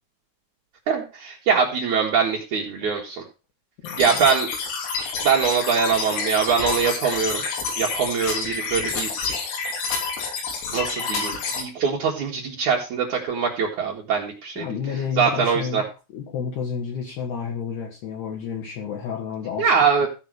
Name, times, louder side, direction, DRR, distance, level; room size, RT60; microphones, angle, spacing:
voice 1, 0.9-3.2 4.0-4.5 5.2-7.4 7.8-9.3 10.7-14.6 15.2-15.8 19.6-20.1, right 6 dB, 75° right, -2 dB, 1.7 m, -23 dB
sound 1, 3.8-11.6, left 4 dB, 85° left, 5.6 m, -28 dB
voice 2, 3.8-4.3 14.6-15.8 16.1-19.7 20.0-20.1, left 7 dB, 60° left, -2 dB, 3.5 m, -30 dB
15.0 x 5.2 x 6.1 m, 0.32 s
omnidirectional pair, 6.0 m